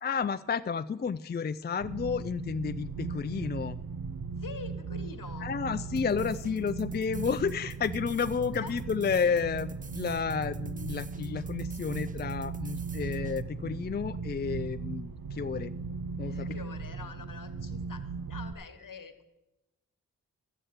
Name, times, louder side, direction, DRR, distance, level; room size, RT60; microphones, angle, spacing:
voice 1, 0.0-3.8 5.4-15.7 16.2-16.6, left 6 dB, 30° left, 12 dB, 0.4 m, -31 dB
sound 1, 1.8-18.5, right 4 dB, 75° right, 0.9 m, -37 dB
voice 2, 4.4-5.5 8.6-8.7 16.2-19.2, left 5 dB, 65° left, 8 dB, 1.4 m, -45 dB
sound 2, 6.0-13.4, right 4 dB, 25° right, 0.6 m, -49 dB
12.0 x 7.9 x 8.0 m, 0.98 s
cardioid pair, 50°, 35 cm